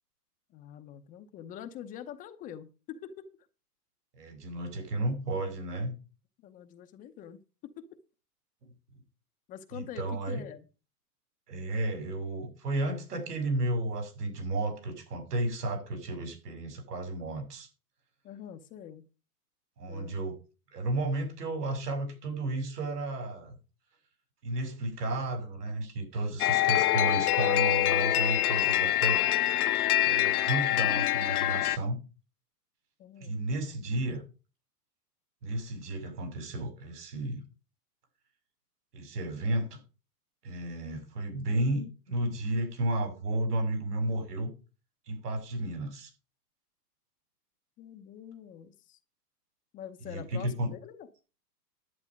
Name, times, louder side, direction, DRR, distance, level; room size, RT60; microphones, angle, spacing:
voice 1, 0.5-3.3 6.4-7.8 9.5-10.7 18.2-19.0 19.9-20.2 33.0-33.4 47.8-49.0 49.7-51.1, left 9 dB, 20° left, 8 dB, 0.7 m, -45 dB
voice 2, 4.1-6.0 8.6-8.7 9.7-10.4 11.5-17.7 19.8-20.3 20.7-23.6 24.4-29.4 30.0-32.0 33.2-34.2 35.4-37.4 38.9-39.8 40.4-44.5 45.1-46.1 50.0-50.7, right 2 dB, 80° right, 5 dB, 7.1 m, -33 dB
sound 1, 26.4-31.8, left 14 dB, 70° left, 1.0 m, -25 dB
11.0 x 9.5 x 5.2 m, 0.33 s
hypercardioid pair, 150°, 46 cm